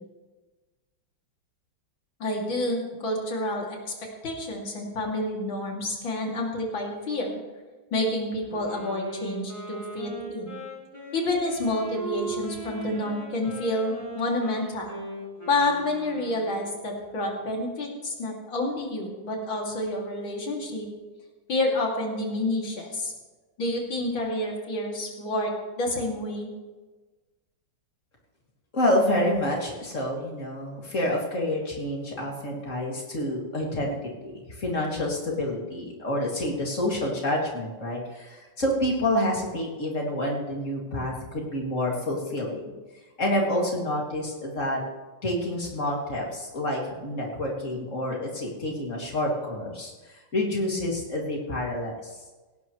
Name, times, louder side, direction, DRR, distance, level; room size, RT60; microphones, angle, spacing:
voice 1, 2.2-3.9 4.2-7.4 7.9-10.6 11.1-15.0 15.5-20.9 21.5-23.1 23.6-26.5, left 1 dB, 85° left, -1 dB, 3.4 m, -29 dB
Wind instrument woodwind instrument, 8.5-16.7, right 2 dB, 15° left, 5.0 m, -39 dB
voice 2, 28.7-34.0 34.2-42.7 43.2-44.8 45.2-52.2, left 1 dB, 40° left, -2 dB, 2.9 m, -28 dB
17.5 x 17.0 x 3.2 m, 1.3 s
omnidirectional pair, 2.1 m